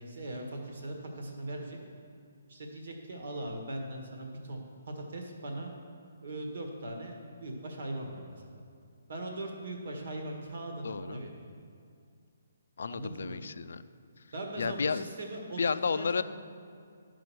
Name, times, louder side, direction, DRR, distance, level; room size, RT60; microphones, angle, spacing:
voice 1, 0.0-1.8 2.5-5.7 6.2-8.6 9.1-11.3 12.9-13.4 14.3-16.2, right 1 dB, 65° right, 1 dB, 1.7 m, -40 dB
voice 2, 10.8-11.2 12.8-13.8 14.6-15.0 15.6-16.2, left 5 dB, 70° left, 13 dB, 0.3 m, -31 dB
11.0 x 5.0 x 6.2 m, 2.3 s
hypercardioid pair, 145°, 0 cm